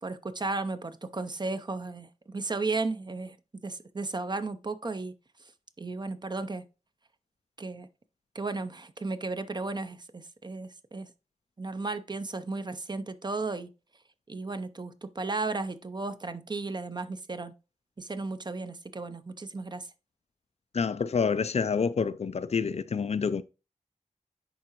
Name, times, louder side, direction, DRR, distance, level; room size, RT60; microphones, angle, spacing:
voice 1, 0.0-5.1 5.8-6.7 7.6-7.9 8.3-11.1 11.6-13.7 14.3-17.5 18.0-19.9, right 3 dB, 35° right, 0.6 m, -34 dB
voice 2, 20.7-23.4, left 5 dB, 55° left, 0.4 m, -28 dB
10.5 x 3.7 x 2.9 m
wide cardioid pair, 75°, 13 cm